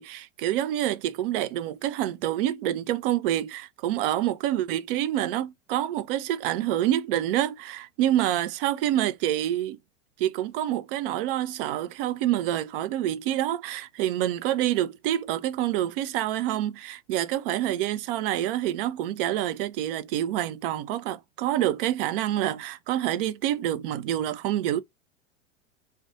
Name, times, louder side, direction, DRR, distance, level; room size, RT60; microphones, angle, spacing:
voice 1, 0.0-9.8 10.2-24.8, right 12 dB, 50° right, 0.4 m, -27 dB
2.3 x 2.2 x 2.6 m
hypercardioid pair, 95°, 37 cm